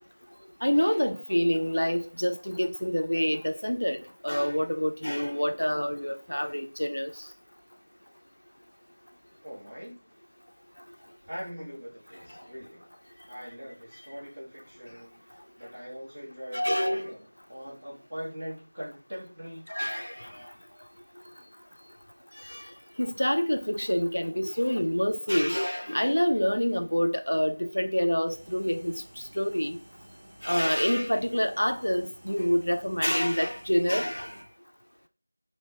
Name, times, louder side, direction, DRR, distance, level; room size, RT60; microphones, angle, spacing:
voice 1, 0.6-7.1 16.5-17.1 19.7-20.3 22.5-22.6 23.0-28.9 29.4-29.8 30.4-34.3, equal, 85° left, 0.4 m, -27 dB
voice 2, 9.4-10.0 11.3-12.9 13.3-19.6, equal, 20° right, 1.3 m, -41 dB
sound 1, 28.3-34.4, right 1 dB, 40° right, 0.7 m, -53 dB
3.4 x 2.1 x 3.2 m
figure-of-eight pair, 175°, 0 cm